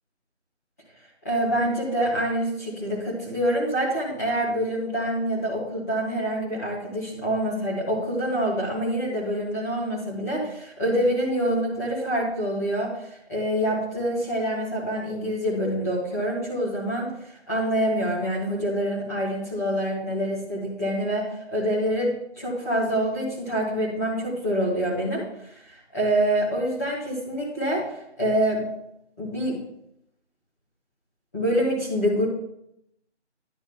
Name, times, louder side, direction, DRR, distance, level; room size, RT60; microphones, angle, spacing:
voice 1, 1.2-13.0 13.3-17.1 17.5-25.2 25.9-28.6 29.2-29.6 31.3-32.2, equal, 15° left, -9 dB, 1.9 m, -26 dB
11.0 x 9.3 x 3.7 m, 0.75 s
figure-of-eight pair, 165°, 35 cm